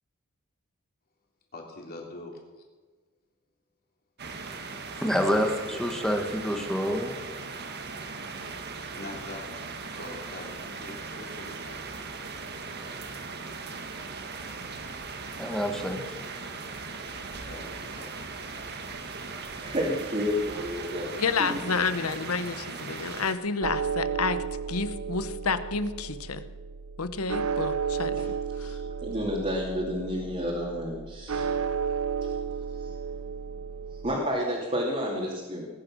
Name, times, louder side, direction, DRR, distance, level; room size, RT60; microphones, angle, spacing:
voice 1, 1.5-2.3 5.4-5.8 9.0-9.7 10.0-11.8 17.3-18.1, left 2 dB, 45° left, 0 dB, 3.5 m, -43 dB
sound 1, 4.2-23.3, right 4 dB, 50° right, 1.5 m, -39 dB
voice 2, 4.9-7.2 15.4-16.2, equal, ahead, 3 dB, 1.5 m, -27 dB
voice 3, 19.6-21.7 28.2-28.3 28.6-31.5 32.2-32.3 32.7-33.0 33.9-35.7, equal, 30° right, -4 dB, 2.7 m, -31 dB
voice 4, 21.2-26.4 27.0-28.3 28.6-28.8, left 5 dB, 85° left, 13 dB, 1.0 m, -30 dB
sound 2, 23.6-34.2, right 6 dB, 80° right, 0.8 m, -33 dB
20.0 x 10.0 x 6.3 m, 1.3 s
head